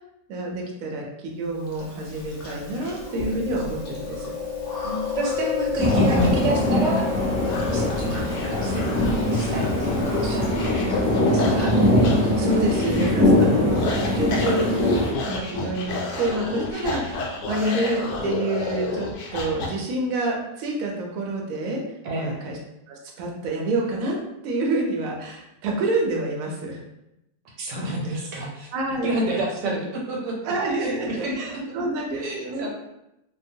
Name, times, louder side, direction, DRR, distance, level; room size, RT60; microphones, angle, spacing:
voice 1, 0.3-4.3 12.4-21.8 22.1-22.6 22.9-24.2 24.4-26.8 28.7-29.2 30.4-32.7, right 2 dB, 65° right, -1 dB, 0.9 m, -28 dB
Chewing mastication, 1.7-10.7, left 5 dB, 65° left, 0.5 m, -32 dB
voice 2, 4.8-7.1 7.5-10.8 11.2-11.7 13.3-13.7 22.0-22.4 27.4-28.7 29.0-30.4 30.7-31.8 32.1-32.7, right 2 dB, 85° right, -1 dB, 1.3 m, -30 dB
sound 1, 5.3-19.7, left 3 dB, 85° left, 1.2 m, -32 dB
sound 2, 5.8-15.1, left 1 dB, 20° right, 0.6 m, -22 dB
2.8 x 2.1 x 2.6 m, 0.87 s
omnidirectional pair, 1.8 m